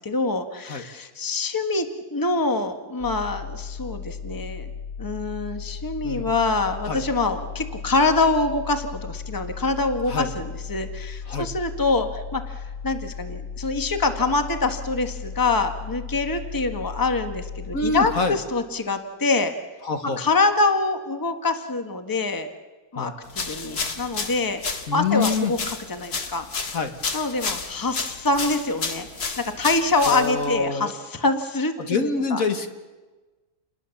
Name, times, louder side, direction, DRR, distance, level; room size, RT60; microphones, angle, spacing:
voice 1, 0.0-1.9 2.1-4.7 5.0-19.5 20.2-22.5 22.9-24.6 24.9-26.4 27.1-29.1 29.4-32.4, left 3 dB, 15° left, 7 dB, 1.4 m, -25 dB
sound 1, 3.0-18.8, left 6 dB, 45° left, 1.1 m, -36 dB
voice 2, 17.7-18.4 19.8-20.2 22.9-23.1 24.9-25.5 26.7-26.9 30.1-30.9 31.8-32.7, left 4 dB, 65° left, 7 dB, 2.0 m, -25 dB
sound 2, 23.3-30.5, left 4 dB, 90° left, 2.4 m, -31 dB
28.5 x 20.5 x 7.1 m, 1.2 s
omnidirectional pair, 1.6 m